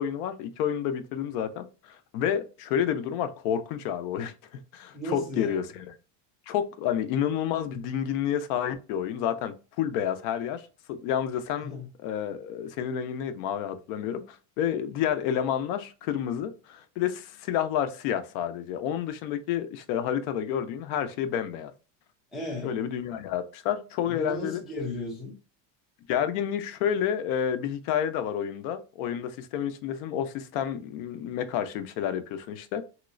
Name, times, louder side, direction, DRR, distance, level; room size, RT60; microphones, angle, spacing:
voice 1, 0.0-5.9 6.5-11.7 12.0-21.7 22.6-24.6 26.1-32.8, left 9 dB, 65° left, 0.7 m, -30 dB
voice 2, 4.9-5.7 11.6-11.9 22.3-22.8 24.1-25.3, left 1 dB, ahead, 0.3 m, -35 dB
3.1 x 2.9 x 2.5 m
cardioid pair, 150°, 50 cm